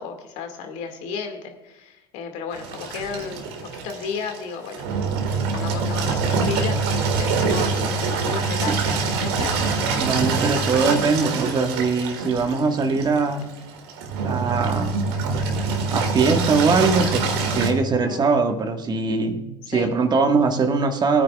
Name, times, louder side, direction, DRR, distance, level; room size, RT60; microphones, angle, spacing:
voice 1, 0.0-3.4 3.7-4.8 5.3-9.6 18.0-18.3 19.7-19.9, left 6 dB, 60° left, 5 dB, 2.1 m, -33 dB
Engine, 2.5-17.7, right 4 dB, 75° right, 1.9 m, -25 dB
voice 2, 10.0-13.5 14.2-15.0 15.9-21.2, right 4 dB, 30° right, 5 dB, 1.6 m, -21 dB
20.5 x 9.6 x 2.4 m, 1.1 s
hypercardioid pair, 75°, 13 cm